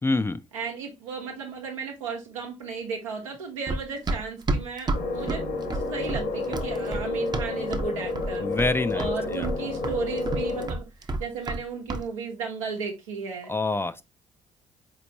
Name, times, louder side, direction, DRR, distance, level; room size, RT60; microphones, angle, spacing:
voice 1, 0.0-0.4 8.4-9.5 13.5-14.0, left 3 dB, 15° left, 0.4 m, -26 dB
voice 2, 0.5-5.4 5.7-8.5 8.9-13.5, right 5 dB, 85° right, 0.9 m, -35 dB
Run, 3.7-7.9 8.2-8.7 9.0-11.6 11.9-12.1, right 2 dB, 25° right, 0.6 m, -30 dB
sound 1, 4.9-10.7, left 3 dB, 65° left, 1.3 m, -30 dB
4.2 x 3.0 x 2.8 m
hypercardioid pair, 50°, 16 cm